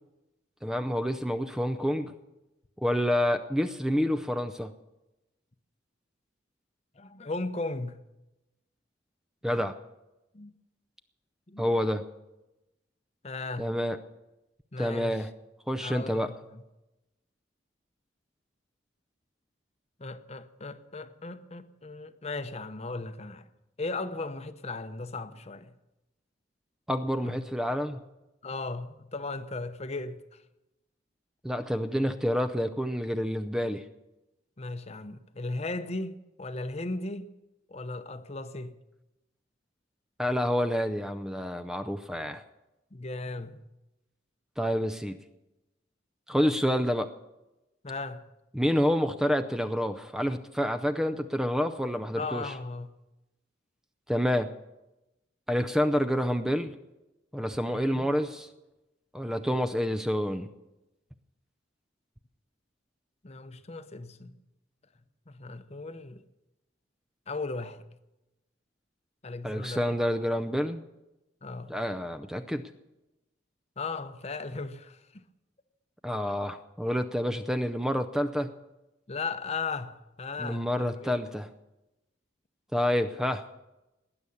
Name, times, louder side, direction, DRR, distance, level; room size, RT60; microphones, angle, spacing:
voice 1, 0.6-2.1 2.8-4.7 9.4-9.7 11.6-12.0 13.6-14.0 14.8-15.3 15.7-16.3 26.9-28.0 31.4-33.8 40.2-42.4 44.6-45.2 46.3-47.1 48.5-52.5 54.1-54.5 55.5-56.7 57.3-58.5 59.1-60.5 69.4-70.8 71.7-72.6 76.0-78.5 80.4-81.5 82.7-83.4, equal, 5° right, 0.5 m, -28 dB
voice 2, 7.0-8.0 9.4-9.6 10.3-10.5 11.5-11.7 13.2-13.7 14.7-15.2 15.8-16.6 20.0-23.4 23.8-25.7 27.2-27.4 28.4-30.2 34.6-37.3 37.7-38.7 42.9-43.6 47.8-48.2 52.2-52.9 57.7-58.1 63.2-64.3 65.3-66.2 67.3-67.8 69.2-69.9 71.4-71.8 73.8-75.2 79.1-81.2, left 3 dB, 35° left, 0.8 m, -37 dB
19.0 x 9.8 x 7.1 m
head